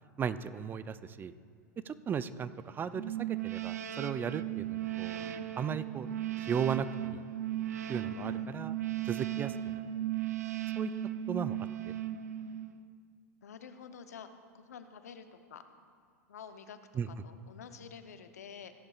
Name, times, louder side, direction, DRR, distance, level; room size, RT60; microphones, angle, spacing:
voice 1, 0.2-1.3 1.9-5.3 5.6-6.1 6.4-7.2 7.9-8.7 9.1-9.8 10.7-10.9 11.3-11.6 11.9-12.0 17.0-17.1, right 7 dB, 25° right, 14 dB, 0.4 m, -36 dB
sound 1, 2.9-12.9, right 12 dB, 80° right, 0.5 m, -36 dB
voice 2, 8.1-8.5 13.4-14.3 14.5-15.6 16.3-16.8 17.1-18.7, left 7 dB, 80° left, 9 dB, 0.8 m, -49 dB
16.0 x 11.5 x 2.4 m, 2.1 s
hypercardioid pair, 95°, 8 cm